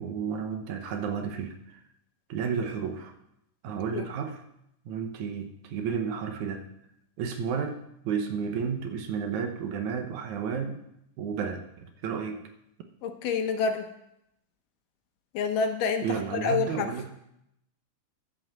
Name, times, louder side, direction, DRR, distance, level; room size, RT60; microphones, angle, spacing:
voice 1, 0.0-1.8 2.3-3.1 3.6-4.4 4.9-6.6 7.2-10.8 11.2-12.4 16.0-17.1, right 6 dB, 70° right, 6 dB, 2.2 m, -32 dB
voice 2, 13.0-13.9 15.3-16.1 16.3-16.9, left 5 dB, 80° left, 6 dB, 2.6 m, -27 dB
11.0 x 7.7 x 7.3 m, 0.80 s
omnidirectional pair, 3.8 m